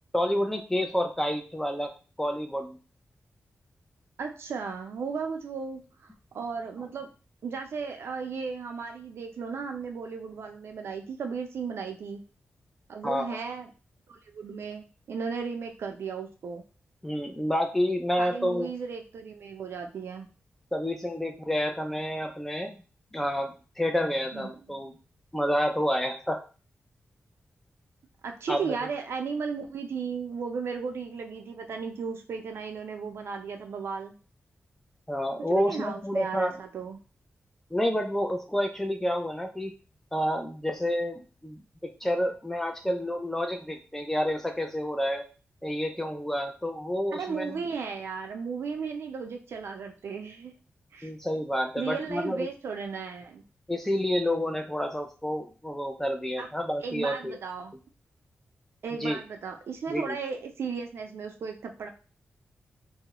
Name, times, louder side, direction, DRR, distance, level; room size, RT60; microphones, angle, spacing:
voice 1, 0.1-1.9 2.2-2.8 13.0-13.4 17.0-18.7 20.7-22.7 23.1-25.0 25.3-26.4 28.5-28.8 35.1-36.6 37.7-39.7 40.1-45.2 45.6-47.6 51.0-52.5 53.7-57.4 59.0-59.2 59.9-60.2, equal, 10° left, 3 dB, 0.3 m, -29 dB
voice 2, 4.2-5.8 6.3-7.1 7.4-12.2 12.9-13.7 14.1-16.6 18.2-20.3 24.3-24.6 28.2-34.1 35.5-37.0 47.1-50.5 50.9-51.1 51.8-53.4 56.4-56.5 56.8-57.7 58.8-61.9, right 5 dB, 80° right, 4 dB, 0.4 m, -35 dB
2.3 x 2.0 x 2.8 m, 0.35 s
wide cardioid pair, 145°, 4 cm